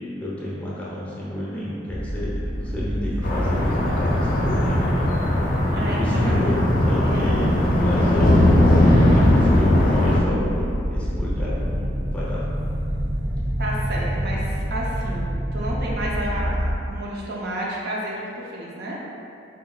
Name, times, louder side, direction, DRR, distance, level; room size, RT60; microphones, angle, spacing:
voice 1, 0.0-5.3 5.8-8.4 9.0-12.5, left 1 dB, 10° left, -8 dB, 0.7 m, -30 dB
sound 1, 1.9-16.7, equal, 25° right, 1.4 m, -27 dB
sound 2, 3.2-10.2, left 1 dB, 45° left, 0.5 m, -19 dB
voice 2, 5.7-6.3 7.0-7.5 13.6-19.0, right 1 dB, 55° right, -4 dB, 0.5 m, -31 dB
4.0 x 4.0 x 2.2 m, 2.6 s
head